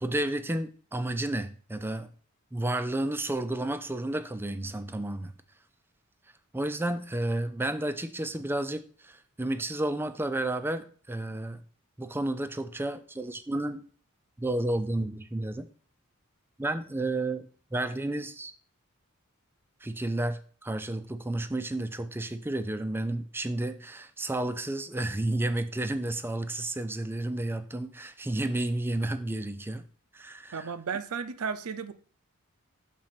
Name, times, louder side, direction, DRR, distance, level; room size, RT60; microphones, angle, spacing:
voice 1, 0.0-2.1 2.5-5.3 6.5-11.6 12.0-13.8 14.4-15.7 16.6-18.5 19.8-29.8 30.1-30.7, right 1 dB, 10° right, 0.4 m, -31 dB
voice 2, 30.5-31.9, right 6 dB, 80° right, 0.6 m, -34 dB
6.5 x 4.1 x 5.8 m
head